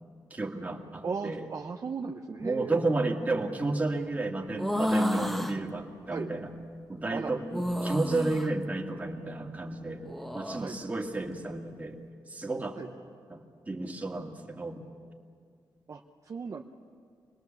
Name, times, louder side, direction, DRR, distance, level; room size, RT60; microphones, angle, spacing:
voice 1, 0.3-1.4 2.4-6.5 6.9-10.0 10.3-12.0 12.3-12.8 13.3-14.8, right 2 dB, 20° right, 1 dB, 2.0 m, -32 dB
voice 2, 1.0-2.8 6.1-6.3 7.1-7.3 10.6-10.8 12.8-12.9 15.9-16.6, right 5 dB, 45° right, 4 dB, 0.7 m, -36 dB
sound 1, 4.5-5.6 7.5-8.5 10.0-10.6, left 1 dB, ahead, 1.0 m, -30 dB
25.0 x 20.0 x 7.1 m, 2.2 s
wide cardioid pair, 110°, 8 cm